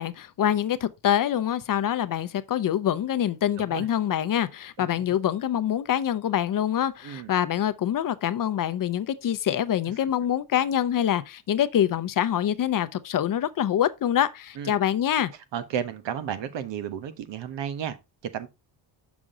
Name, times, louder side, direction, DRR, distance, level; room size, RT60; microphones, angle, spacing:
voice 1, 0.0-15.3, left 10 dB, 45° left, 0.7 m, -25 dB
voice 2, 4.8-5.1 7.0-7.3 14.6-14.8 15.5-18.0 18.3-18.5, right 9 dB, 70° right, 1.3 m, -33 dB
6.2 x 6.2 x 3.7 m
cardioid pair, 105°, 45 cm